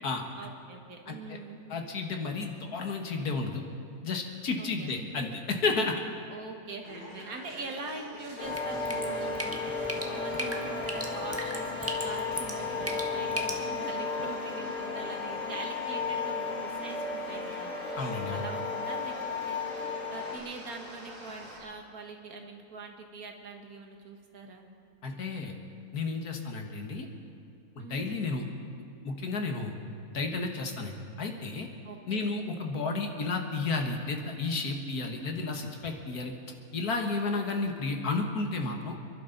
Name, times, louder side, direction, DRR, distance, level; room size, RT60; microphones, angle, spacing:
voice 1, 0.4-1.6 4.6-4.9 6.3-17.8 18.3-19.6 20.1-24.7 27.8-28.2 31.8-32.2 32.7-33.0, right 3 dB, 70° right, 3 dB, 2.0 m, -43 dB
voice 2, 1.1-1.4 1.7-3.7 4.0-6.0 18.0-18.5 25.0-25.5 25.9-27.1 27.8-28.5 29.0-29.8 30.1-31.7 32.1-36.3 36.7-39.0, left 3 dB, 80° left, 3 dB, 2.0 m, -32 dB
sound 1, 6.8-21.6, equal, 55° right, 4.8 m, -47 dB
sound 2, 8.4-20.4, left 4 dB, 60° left, 2.1 m, -34 dB
Drip, 8.4-13.6, right 1 dB, 10° right, 1.2 m, -39 dB
27.0 x 11.5 x 4.0 m, 2.5 s
omnidirectional pair, 1.6 m